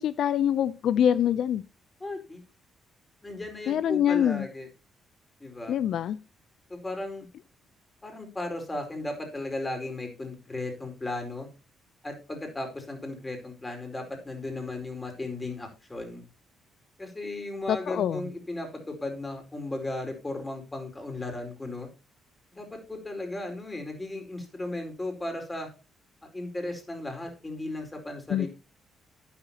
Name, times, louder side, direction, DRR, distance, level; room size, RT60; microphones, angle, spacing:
voice 1, 0.0-1.6 3.7-4.5 5.7-6.2 17.7-18.2 28.3-28.5, left 10 dB, 70° left, 0.4 m, -25 dB
voice 2, 2.0-2.4 3.2-4.7 5.4-5.8 6.7-7.3 8.0-11.5 12.0-16.2 17.0-21.9 22.5-25.7 26.3-28.5, left 2 dB, 20° left, 4.5 m, -36 dB
13.0 x 9.9 x 2.9 m
cardioid pair, 90°, 0 cm